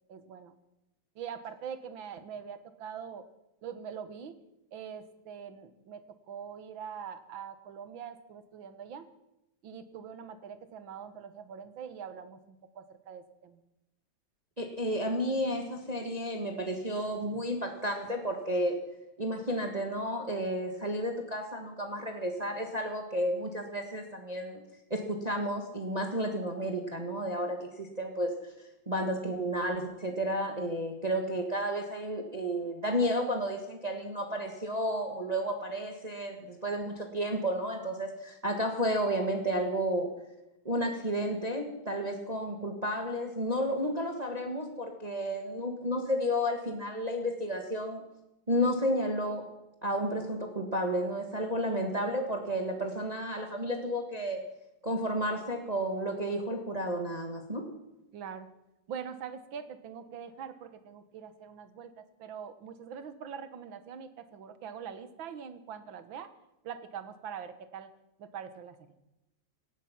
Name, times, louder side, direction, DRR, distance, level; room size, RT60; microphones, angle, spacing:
voice 1, 0.1-0.6 1.2-3.2 3.6-4.4 4.7-6.0 6.3-9.1 9.6-13.6 51.6-52.0 58.1-58.5 58.9-66.3 66.6-67.9 68.2-68.8, right 7 dB, 85° right, 11 dB, 2.0 m, -43 dB
voice 2, 14.6-18.7 19.2-24.6 24.9-28.3 28.9-40.1 40.6-48.0 48.5-49.4 49.8-54.4 54.8-57.6, equal, 20° right, 3 dB, 1.6 m, -32 dB
17.5 x 12.0 x 6.0 m, 0.90 s
omnidirectional pair, 2.1 m